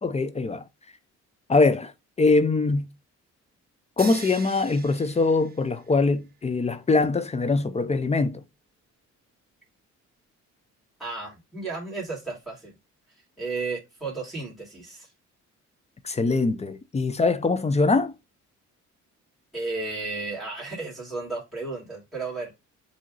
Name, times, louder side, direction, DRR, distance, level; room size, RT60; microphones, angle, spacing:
voice 1, 0.0-0.6 1.5-1.9 2.2-2.9 4.0-8.4 16.0-18.1, left 3 dB, 20° left, 0.5 m, -23 dB
sound 1, 4.0-6.1, right 6 dB, 30° right, 0.6 m, -41 dB
voice 2, 11.0-12.7 13.4-15.1 19.5-22.5, right 3 dB, ahead, 2.6 m, -33 dB
7.4 x 2.8 x 2.5 m
cardioid pair, 90°, 30 cm